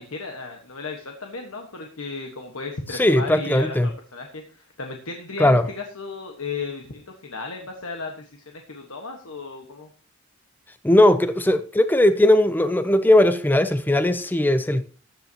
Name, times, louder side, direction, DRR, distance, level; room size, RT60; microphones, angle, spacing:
voice 1, 0.0-9.9, left 4 dB, 75° left, 1.5 m, -35 dB
voice 2, 2.9-3.9 5.4-5.6 10.8-14.8, left 1 dB, 10° left, 0.4 m, -18 dB
14.5 x 10.5 x 2.9 m
head